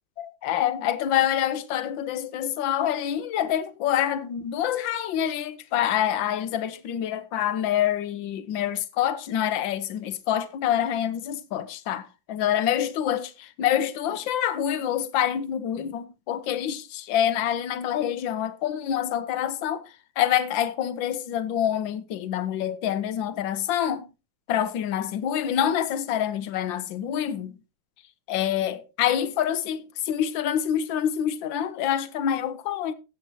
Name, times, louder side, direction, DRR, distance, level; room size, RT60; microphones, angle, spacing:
voice 1, 0.2-19.8 20.2-24.1 24.5-27.5 28.3-32.9, left 10 dB, 80° left, 1.6 m, -26 dB
15.5 x 8.0 x 2.8 m
omnidirectional pair, 2.1 m